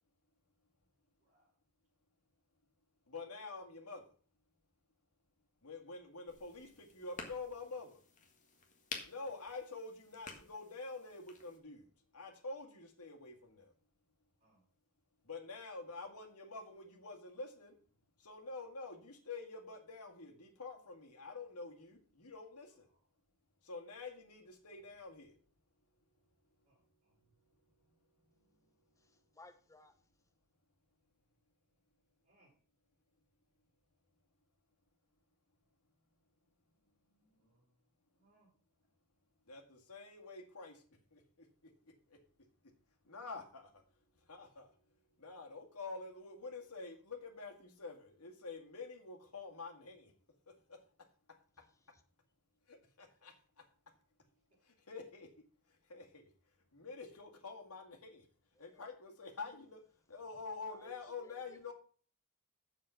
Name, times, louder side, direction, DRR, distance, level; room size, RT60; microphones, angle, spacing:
voice 1, 1.2-1.6 14.4-14.6 22.7-23.1 23.7-24.0 26.6-27.2 32.2-32.5 37.2-37.8 38.1-38.5, right 2 dB, 35° right, 4.6 m, -74 dB
voice 2, 3.1-4.0 5.6-8.0 9.0-11.9 12.1-13.7 15.3-17.7 18.2-22.9 23.6-25.4 39.5-40.8 41.1-41.2 43.1-43.7 44.3-44.7 45.2-50.1 50.7-50.8 52.7-53.3 54.9-55.3 55.9-56.3 56.7-58.2 58.6-59.8 60.1-61.7, left 3 dB, 85° left, 2.0 m, -47 dB
sound 1, 6.3-11.6, left 4 dB, 35° left, 1.7 m, -51 dB
voice 3, 29.0-30.0 51.5-52.0 58.5-58.8 60.7-61.7, left 2 dB, 15° left, 1.1 m, -62 dB
7.7 x 7.1 x 5.8 m
head